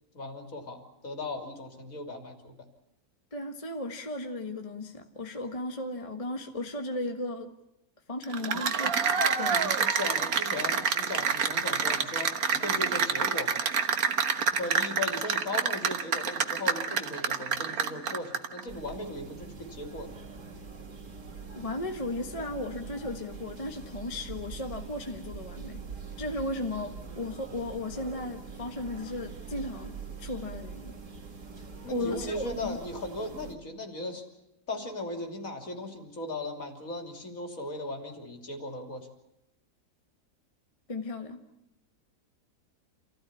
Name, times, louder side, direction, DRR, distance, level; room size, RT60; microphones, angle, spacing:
voice 1, 0.1-2.6 9.4-13.7 14.5-20.1 31.8-34.2 34.7-39.1, left 2 dB, 50° left, 4 dB, 3.5 m, -37 dB
voice 2, 3.3-7.5 8.1-8.9 9.4-9.6 21.5-25.8 26.2-29.9 30.2-30.9 31.9-32.8 40.9-41.4, left 2 dB, 20° left, 4 dB, 1.4 m, -35 dB
Cheering / Applause, 8.2-18.6, right 6 dB, 60° right, 1.7 m, -27 dB
sound 1, 18.7-33.5, right 5 dB, 75° right, 3.0 m, -43 dB
28.0 x 15.5 x 9.8 m, 0.88 s
omnidirectional pair, 1.8 m